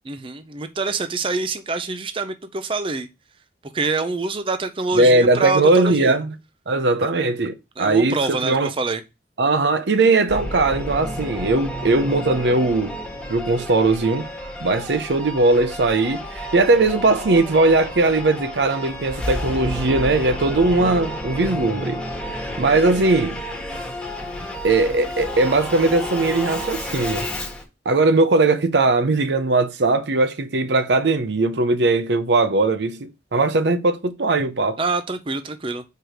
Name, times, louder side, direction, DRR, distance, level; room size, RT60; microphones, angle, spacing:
voice 1, 0.0-3.1 3.7-6.2 7.0-7.1 7.8-9.0 34.8-35.8, right 3 dB, 30° right, 0.5 m, -26 dB
voice 2, 5.0-6.3 6.7-8.7 9.4-12.9 13.3-14.3 14.6-22.0 22.3-23.4 24.6-27.3 27.9-34.8, right 3 dB, 70° right, 0.6 m, -19 dB
Singing / Musical instrument, 10.3-27.6, left 1 dB, 5° left, 1.3 m, -31 dB
4.7 x 4.6 x 5.0 m
head